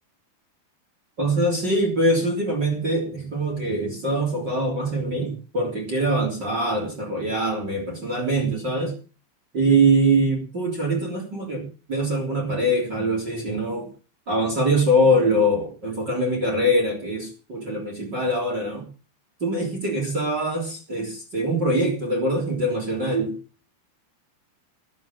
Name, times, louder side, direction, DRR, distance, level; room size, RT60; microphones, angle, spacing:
voice 1, 1.2-8.9 9.5-13.9 14.3-18.8 19.4-23.4, right 1 dB, 25° right, 1 dB, 3.4 m, -23 dB
18.5 x 7.6 x 7.4 m, 0.37 s
omnidirectional pair, 5.7 m